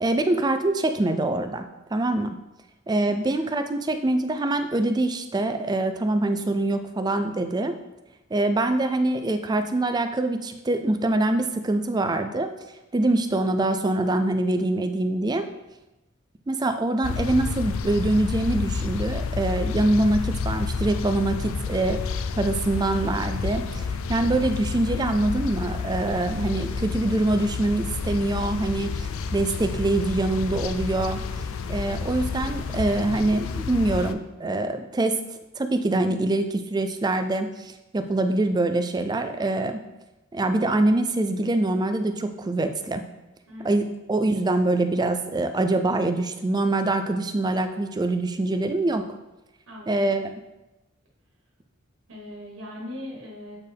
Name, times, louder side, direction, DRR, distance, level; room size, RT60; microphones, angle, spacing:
voice 1, 0.0-1.6 1.9-2.4 2.9-7.7 8.3-12.5 12.9-15.4 16.5-22.0 22.4-31.2 31.7-35.2 35.6-39.8 40.3-43.0 43.6-49.0 49.9-50.3, right 2 dB, 20° right, 8 dB, 0.4 m, -24 dB
sound 1, 17.0-34.1, left 5 dB, 75° left, 0.4 m, -30 dB
voice 2, 43.5-43.9 49.7-50.1 52.1-53.6, left 1 dB, 70° right, -3 dB, 1.3 m, -40 dB
8.1 x 4.4 x 3.5 m, 0.99 s
head